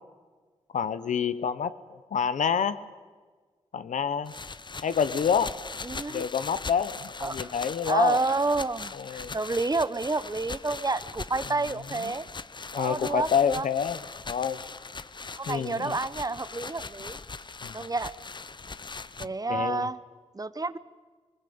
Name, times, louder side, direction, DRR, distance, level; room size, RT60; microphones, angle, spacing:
voice 1, 0.7-2.8 3.7-4.3 4.8-5.6 6.1-8.2 8.9-9.4 11.9-12.1 12.7-14.0 14.3-14.6 15.5-15.9 17.6-17.8 19.2-19.9, left 7 dB, 85° left, 13 dB, 0.9 m, -28 dB
sound 1, 4.3-19.3, left 4 dB, 40° left, 0.7 m, -40 dB
voice 2, 5.8-6.3 7.2-7.5 7.9-12.3 12.7-13.7 15.3-17.2 17.7-18.1 19.2-20.0 20.3-20.8, right 3 dB, 30° right, 15 dB, 0.9 m, -29 dB
20.5 x 20.0 x 8.6 m, 1.5 s
cardioid pair, 55°, 12 cm